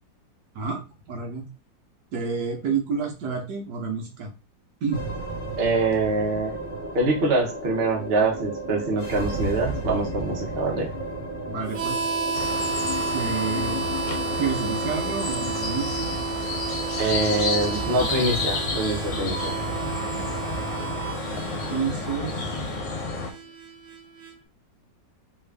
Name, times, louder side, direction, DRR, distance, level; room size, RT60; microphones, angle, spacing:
voice 1, 1.1-1.5 2.1-4.3 4.8-5.0 11.5-12.0 13.1-13.8 14.4-16.2 19.1-19.4 20.0-20.2 21.5-22.6, right 5 dB, 65° right, 1 dB, 1.4 m, -30 dB
sound 1, 4.9-23.4, right 1 dB, 35° left, 1.0 m, -35 dB
voice 2, 5.6-6.6 6.9-10.9 17.0-19.6, right 2 dB, 40° right, -1 dB, 0.9 m, -24 dB
Harmonica, 11.7-24.3, right 5 dB, 85° right, 1.9 m, -32 dB
sound 2, 12.3-23.3, left 3 dB, 70° left, 1.4 m, -31 dB
3.6 x 2.5 x 3.3 m, 0.30 s
omnidirectional pair, 2.0 m